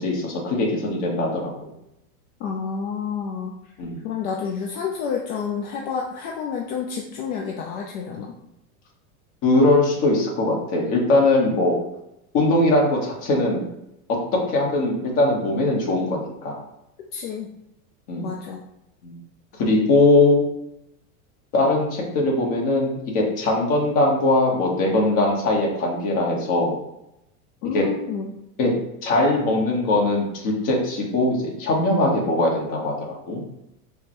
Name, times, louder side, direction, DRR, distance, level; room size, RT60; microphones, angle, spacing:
voice 1, 0.0-1.7 3.8-4.0 9.4-11.8 12.3-13.6 14.1-14.2 14.5-16.6 18.1-18.3 19.0-19.2 19.6-20.4 21.5-26.8 27.7-27.8 28.6-28.7 29.0-33.4, left 2 dB, 45° left, -1 dB, 1.3 m, -21 dB
voice 2, 2.4-3.5 4.0-8.3 17.1-17.5 18.2-18.6 27.6-28.3, left 6 dB, 70° left, 0 dB, 0.6 m, -29 dB
4.8 x 2.3 x 3.0 m, 0.85 s
supercardioid pair, 135°, 45 cm